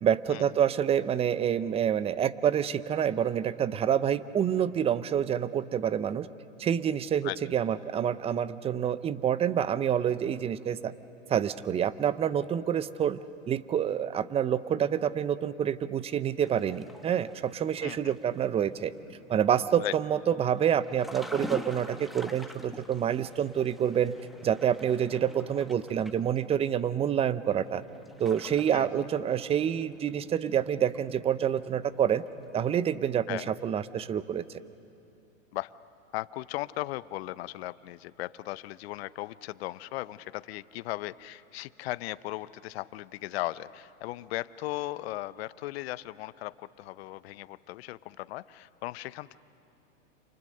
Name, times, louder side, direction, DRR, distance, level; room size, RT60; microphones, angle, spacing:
voice 1, 0.0-6.3 6.6-10.9 11.3-13.2 13.5-18.9 19.3-24.1 24.4-27.8 28.2-32.2 32.5-34.4, right 9 dB, 15° right, 16 dB, 0.6 m, -27 dB
sound 1, 16.4-32.8, equal, ahead, 1.1 m, -47 dB
voice 2, 17.8-18.1 19.8-19.9 28.7-28.9 33.3-33.5 35.5-35.7 36.1-49.4, left 17 dB, 50° left, 17 dB, 0.8 m, -37 dB
28.5 x 28.5 x 6.6 m, 2.9 s
hypercardioid pair, 110°, 39 cm